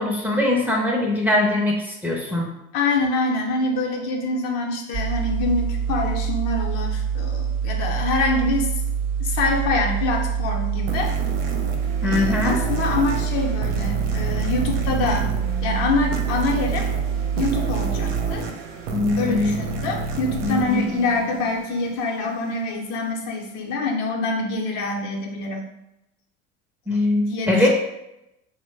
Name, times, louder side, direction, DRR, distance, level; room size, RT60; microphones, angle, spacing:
voice 1, 0.0-2.5 12.0-12.6 18.9-19.6 20.4-20.9 26.9-27.7, left 2 dB, 5° right, -3 dB, 0.5 m, -21 dB
voice 2, 2.7-8.7 9.2-11.1 12.0-15.3 15.6-16.9 17.3-18.5 19.1-25.7 27.1-27.7, left 3 dB, 65° left, 1 dB, 0.7 m, -25 dB
sound 1, 4.9-18.4, right 7 dB, 50° right, 0.7 m, -25 dB
sound 2, 10.9-22.0, right 4 dB, 85° right, 0.6 m, -31 dB
2.9 x 2.1 x 3.2 m, 0.89 s
supercardioid pair, 100°, 32 cm